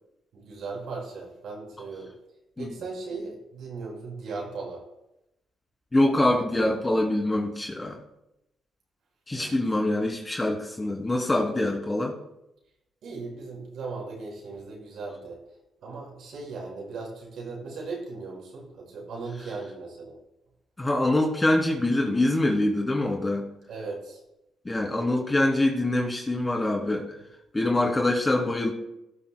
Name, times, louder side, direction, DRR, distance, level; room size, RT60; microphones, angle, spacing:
voice 1, 0.3-2.1 2.6-4.9 9.3-9.6 13.0-15.4 15.8-20.2 23.7-24.2, right 4 dB, 70° right, -2 dB, 5.2 m, -37 dB
voice 2, 5.9-8.0 9.3-12.1 20.8-23.5 24.6-27.1 27.5-28.7, left 1 dB, 20° left, 0 dB, 2.7 m, -24 dB
17.5 x 12.5 x 2.2 m, 0.88 s
cardioid pair, 90°, 0 cm